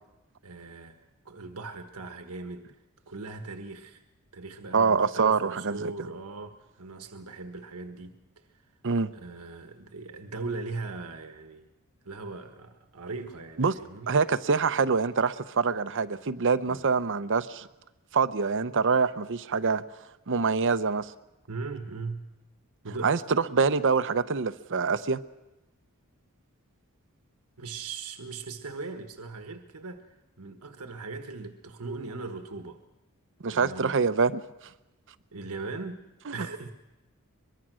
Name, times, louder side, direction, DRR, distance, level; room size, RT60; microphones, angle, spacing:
voice 1, 0.4-1.0 1.2-2.7 3.1-4.0 4.3-8.2 9.1-11.7 12.0-14.1 16.7-16.9 21.5-22.3 22.8-23.2 27.6-30.1 30.4-32.8 33.5-33.9 35.3-36.0 36.3-36.7, right 3 dB, 85° right, 6 dB, 1.4 m, -39 dB
voice 2, 4.7-5.9 8.8-9.1 13.6-13.7 14.1-17.7 18.1-19.8 20.3-21.1 23.0-25.2 33.4-34.4 36.3-36.4, right 5 dB, 60° right, 13 dB, 0.8 m, -25 dB
23.5 x 22.0 x 6.3 m, 1.0 s
head